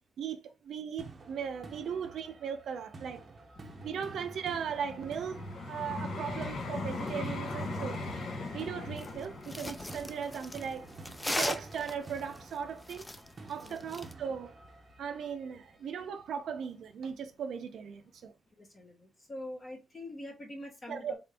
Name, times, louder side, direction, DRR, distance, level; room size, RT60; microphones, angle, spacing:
voice 1, 0.2-3.2 3.8-8.0 8.5-10.9 11.3-13.1 13.5-14.5 15.0-18.3 20.9-21.1, right 7 dB, 80° right, 0.4 m, -38 dB
sound 1, 1.0-15.9, right 3 dB, 40° right, 0.6 m, -51 dB
Vehicle, 3.6-12.6 13.3-13.4, left 2 dB, 70° left, 0.9 m, -40 dB
sound 2, 9.0-14.1, left 1 dB, 10° left, 0.3 m, -38 dB
voice 2, 18.6-21.2, left 1 dB, 30° left, 0.9 m, -44 dB
3.6 x 2.5 x 3.3 m
wide cardioid pair, 135°, 0 cm